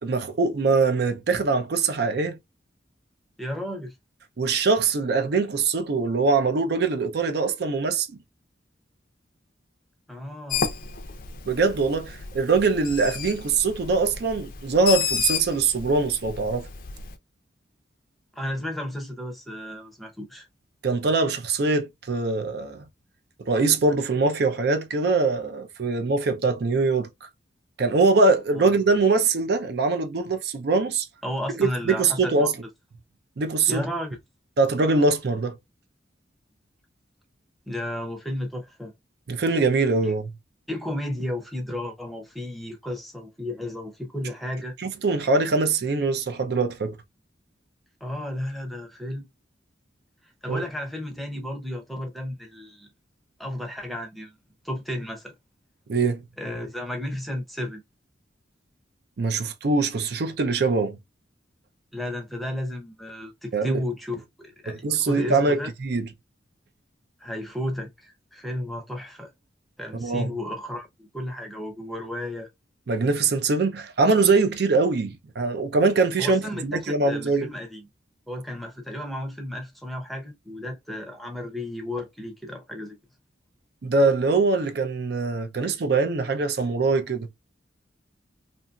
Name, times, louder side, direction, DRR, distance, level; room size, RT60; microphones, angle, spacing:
voice 1, 0.0-2.4 4.4-8.1 11.5-16.7 20.8-22.8 23.5-27.1 27.8-31.1 31.6-32.5 33.4-33.9 34.6-35.6 39.3-40.3 44.8-47.0 50.5-50.6 55.9-56.2 59.2-61.0 63.5-63.8 64.8-66.1 70.0-70.3 72.9-77.5 83.8-87.3, right 3 dB, 60° right, 0.5 m, -23 dB
voice 2, 3.4-4.0 10.1-10.7 18.3-20.5 28.5-28.7 31.2-32.5 33.7-34.2 37.7-38.9 40.0-40.1 40.7-44.8 48.0-49.3 50.4-52.9 53.4-54.3 54.6-55.3 56.4-57.8 61.9-65.7 67.2-69.3 69.8-72.5 76.2-77.9 78.3-83.0, left 1 dB, ahead, 0.6 m, -33 dB
Bird, 10.5-17.2, left 6 dB, 50° left, 0.5 m, -32 dB
2.8 x 2.6 x 2.2 m
head